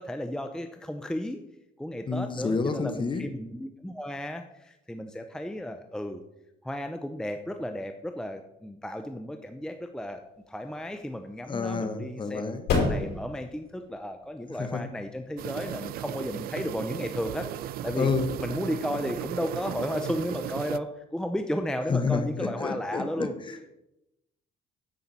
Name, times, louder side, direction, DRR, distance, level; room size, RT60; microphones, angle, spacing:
voice 1, 0.0-1.4 1.8-6.2 6.6-10.2 10.5-12.4 12.7-18.1 18.4-23.3, equal, 5° left, 6 dB, 0.6 m, -34 dB
voice 2, 2.1-3.2 11.5-12.7 14.5-14.9 17.9-18.3 21.9-23.7, left 4 dB, 30° left, 9 dB, 1.2 m, -29 dB
sound 1, 10.2-17.4, left 4 dB, 75° left, 4.3 m, -34 dB
sound 2, 15.4-20.8, right 12 dB, 60° right, 0.4 m, -36 dB
10.5 x 8.3 x 4.2 m, 0.91 s
cardioid pair, 110°, 17 cm